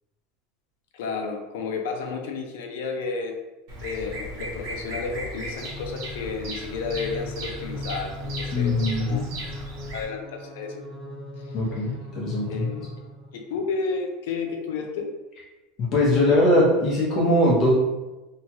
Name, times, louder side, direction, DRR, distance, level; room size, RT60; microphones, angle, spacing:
voice 1, 0.9-3.4 3.8-9.3 9.9-10.8 12.5-12.9 13.3-15.1, left 4 dB, 75° left, 3 dB, 0.5 m, -32 dB
Bird vocalization bird call bird song, 3.7-10.0, right 1 dB, 50° right, 0.8 m, -36 dB
sound 1, 5.5-13.5, left 2 dB, 5° right, 0.8 m, -39 dB
voice 2, 8.5-9.2 11.5-12.7 15.9-17.7, left 1 dB, 30° left, -5 dB, 0.7 m, -21 dB
2.8 x 2.3 x 2.9 m, 1.1 s
supercardioid pair, 175°, 0 cm